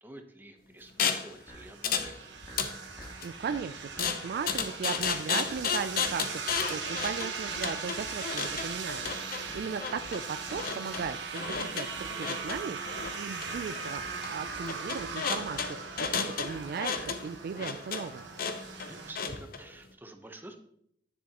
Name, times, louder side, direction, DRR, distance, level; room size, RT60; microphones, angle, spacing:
voice 1, 0.0-2.3 18.8-20.6, right 1 dB, 10° right, 5 dB, 0.8 m, -49 dB
sound 1, 1.0-1.3 1.8-2.1 2.4-3.3 4.0-19.6, left 6 dB, 55° left, 0.7 m, -33 dB
sound 2, 1.2-19.1, right 5 dB, 75° right, 1.2 m, -39 dB
sound 3, 1.5-17.5, equal, 15° left, 1.4 m, -50 dB
voice 2, 3.2-18.3, right 6 dB, 55° right, 11 dB, 0.3 m, -37 dB
10.0 x 7.0 x 2.9 m, 0.70 s
head